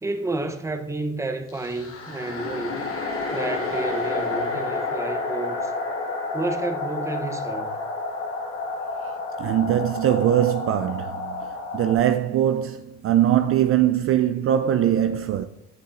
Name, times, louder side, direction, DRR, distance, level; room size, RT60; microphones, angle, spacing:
voice 1, 0.0-2.9 3.3-5.7 6.3-7.7, right 2 dB, 10° right, 0.8 m, -30 dB
sound 1, 1.5-12.0, left 3 dB, 45° left, 1.6 m, -30 dB
voice 2, 9.4-11.4 11.7-15.5, right 11 dB, 45° right, 0.4 m, -21 dB
8.3 x 6.4 x 2.5 m
supercardioid pair, 65°, 30 cm